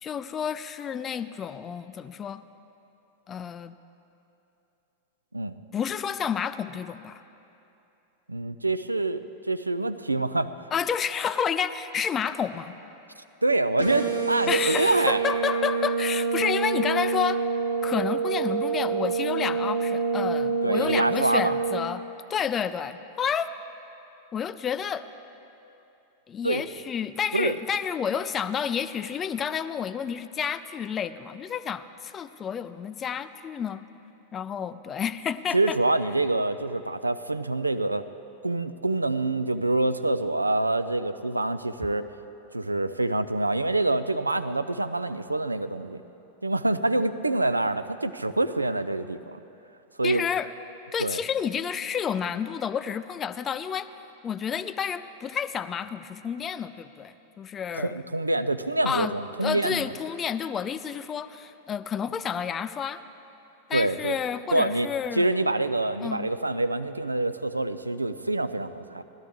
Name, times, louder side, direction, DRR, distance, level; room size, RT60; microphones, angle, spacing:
voice 1, 0.0-2.4 3.3-3.8 5.7-7.2 10.7-12.7 14.5-17.4 17.8-22.0 22.3-23.5 24.3-25.1 26.3-33.8 34.3-35.8 50.0-50.5 50.9-53.9 54.2-57.9 58.9-59.1 59.4-63.0 63.7-65.3 66.0-66.3, left 7 dB, 25° left, 13 dB, 0.4 m, -30 dB
voice 2, 8.3-10.5 13.4-15.2 20.6-21.6 26.4-26.6 27.3-27.5 35.5-38.0 38.4-42.1 42.5-46.0 46.4-49.4 50.0-50.3 51.0-51.2 57.7-59.9 63.7-64.2 64.5-64.9 65.1-69.0, right 2 dB, 85° right, 12 dB, 0.3 m, -26 dB
sound 1, 13.8-21.8, right 5 dB, 90° left, 1.7 m, -27 dB
17.0 x 12.0 x 3.5 m, 2.9 s
figure-of-eight pair, 90°, 0 cm